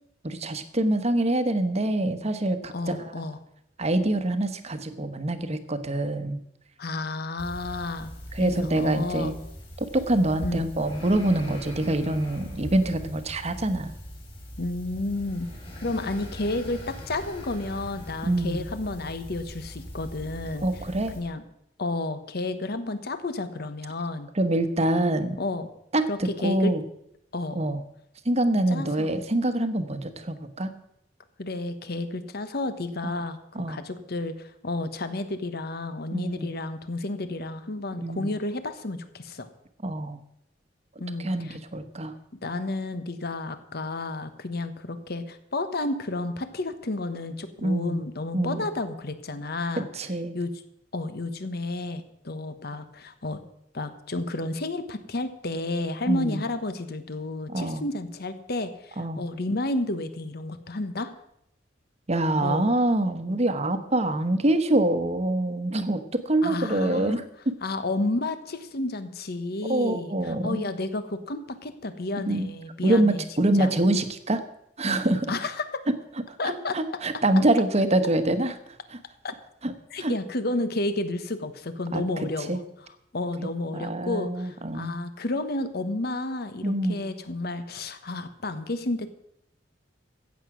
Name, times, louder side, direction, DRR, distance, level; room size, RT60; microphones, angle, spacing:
voice 1, 0.2-3.1 3.8-6.4 8.3-9.4 9.8-13.9 18.2-18.6 20.6-21.2 24.3-25.4 25.9-26.8 27.5-27.8 28.2-30.7 33.5-33.8 36.1-36.5 38.0-38.3 39.8-40.2 41.2-42.1 47.6-48.1 48.3-48.6 49.8-50.4 56.1-56.4 57.5-57.8 59.0-59.2 62.1-67.5 69.6-70.7 72.3-72.5 72.8-74.4 74.8-75.3 76.4-78.5 78.9-79.0 79.6-80.1 81.9-82.0 82.5-82.6 83.7-85.0 86.6-87.0, right 1 dB, 35° right, 9 dB, 1.1 m, -25 dB
voice 2, 2.7-3.4 6.8-8.1 8.4-9.3 10.4-10.7 14.6-15.5 15.8-20.7 21.1-21.4 21.8-24.3 25.4-25.7 26.1-26.7 27.3-27.6 28.7-29.2 31.4-39.5 41.0-41.6 42.4-49.9 50.3-50.5 50.9-53.4 53.7-61.1 62.4-62.7 66.4-67.2 67.6-73.2 73.5-73.7 75.3-75.8 76.4-76.8 79.2-79.3 79.9-82.6 83.1-89.1, left 2 dB, 60° left, 10 dB, 1.2 m, -31 dB
sound 1, 7.4-21.2, equal, 30° left, 4.2 m, -41 dB
15.0 x 8.3 x 6.1 m, 0.75 s
head